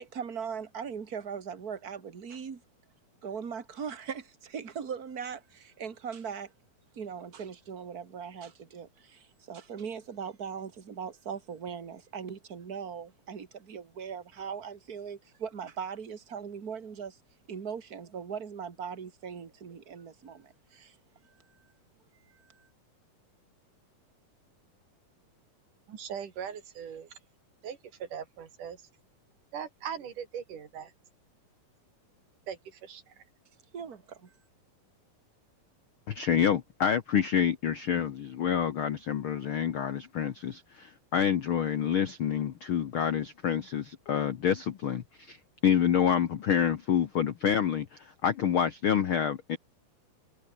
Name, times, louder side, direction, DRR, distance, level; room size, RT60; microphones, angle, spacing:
voice 1, 0.0-2.6 3.2-6.5 6.9-17.2 17.5-21.0 21.2-21.4 22.3-22.7 33.7-34.3, right 7 dB, 30° right, 2.0 m, -40 dB
voice 2, 25.9-27.1 27.6-28.8 29.5-30.9 32.5-33.2, right 8 dB, 65° right, 3.9 m, -40 dB
voice 3, 36.1-45.4 45.6-49.6, left 8 dB, 70° left, 1.2 m, -28 dB
omnidirectional pair, 4.1 m